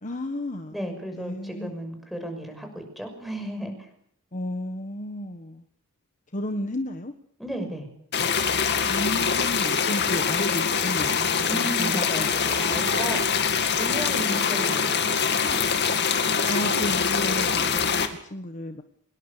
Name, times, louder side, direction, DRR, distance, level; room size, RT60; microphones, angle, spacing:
voice 1, 0.0-0.8 1.1-1.9 4.3-5.6 6.3-7.1 8.9-12.5 16.4-18.8, left 1 dB, 35° left, 7 dB, 1.5 m, -33 dB
voice 2, 0.7-3.9 7.4-7.9 11.5-13.4 13.8-15.3, right 1 dB, ahead, 5 dB, 6.3 m, -34 dB
sound 1, 8.1-18.1, left 6 dB, 50° left, 2.4 m, -24 dB
sound 2, 12.2-13.3 14.2-15.6 15.9-16.8 17.1-17.7, right 3 dB, 80° right, 4.5 m, -39 dB
25.0 x 21.5 x 6.9 m, 0.68 s
head